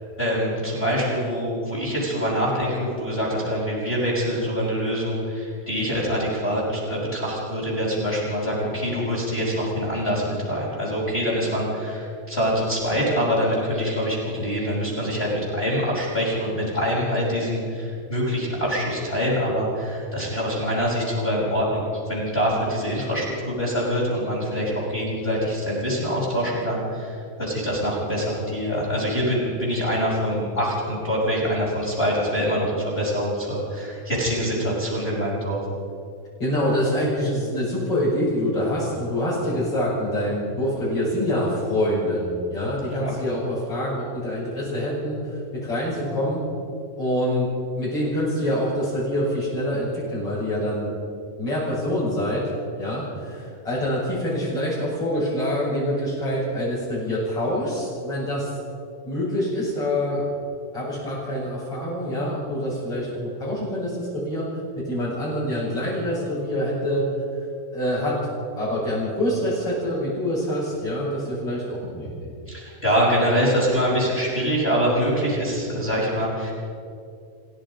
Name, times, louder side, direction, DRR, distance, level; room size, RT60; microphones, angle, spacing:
voice 1, 0.2-35.6 42.9-43.1 72.5-76.5, equal, 15° left, -7 dB, 6.1 m, -25 dB
voice 2, 36.4-46.4 47.0-47.5 47.8-50.9 51.4-52.5 52.8-58.5 59.1-60.3 60.7-64.5 64.8-67.1 67.7-68.2 68.6-72.3, equal, 40° left, -10 dB, 6.9 m, -25 dB
29.5 x 16.5 x 5.3 m, 2.4 s
omnidirectional pair, 4.1 m